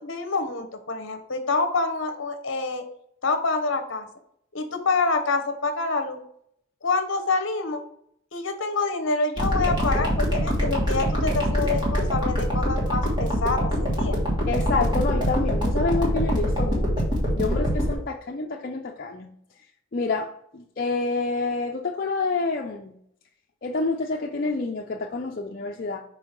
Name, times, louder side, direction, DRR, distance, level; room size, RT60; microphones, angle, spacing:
voice 1, 0.0-2.8 3.2-4.1 4.5-6.2 6.8-7.8 8.3-14.3, left 3 dB, 60° left, 6 dB, 0.9 m, -27 dB
sound 1, 9.4-17.9, equal, 20° right, 1.6 m, -24 dB
voice 2, 14.5-19.3 19.9-22.9 23.6-26.0, left 3 dB, 40° left, 0 dB, 0.5 m, -28 dB
5.5 x 4.4 x 4.5 m, 0.69 s
head